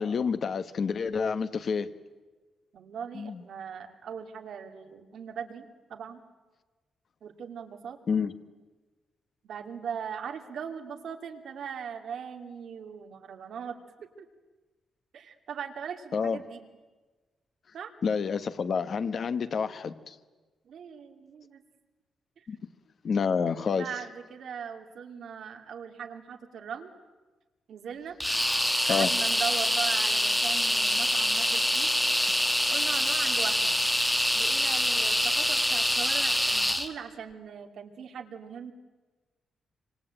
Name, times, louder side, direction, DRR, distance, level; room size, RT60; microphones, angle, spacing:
voice 1, 0.0-1.9 3.1-3.4 8.1-8.3 16.1-16.4 18.0-20.1 22.5-22.6 23.0-23.9 28.9-29.1, left 6 dB, 45° left, 11 dB, 1.2 m, -28 dB
voice 2, 2.7-6.2 7.2-8.0 9.4-14.3 15.1-16.7 17.7-17.9 20.6-21.6 22.4-22.5 23.7-26.9 27.7-28.2 28.8-31.9 32.7-33.8 34.3-38.7, right 7 dB, 60° right, 5 dB, 2.6 m, -39 dB
sound 1, 28.2-36.9, equal, 5° left, 1.3 m, -25 dB
26.0 x 25.5 x 8.9 m, 1.3 s
wide cardioid pair, 170°, 0 cm